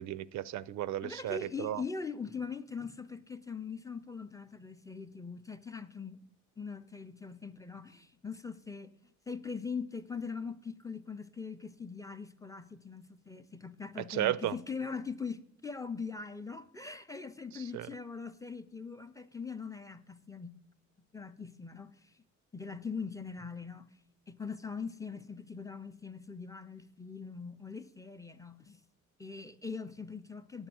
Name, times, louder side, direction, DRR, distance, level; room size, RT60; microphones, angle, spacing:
voice 1, 0.0-1.8 14.1-14.5 17.5-17.9, right 13 dB, 70° right, 0.4 m, -34 dB
voice 2, 1.0-6.2 6.6-8.9 9.3-20.6 21.1-21.9 22.5-23.9 24.3-28.8 29.2-30.7, left 5 dB, 10° left, 0.6 m, -41 dB
9.0 x 7.0 x 7.6 m
cardioid pair, 90°, 30 cm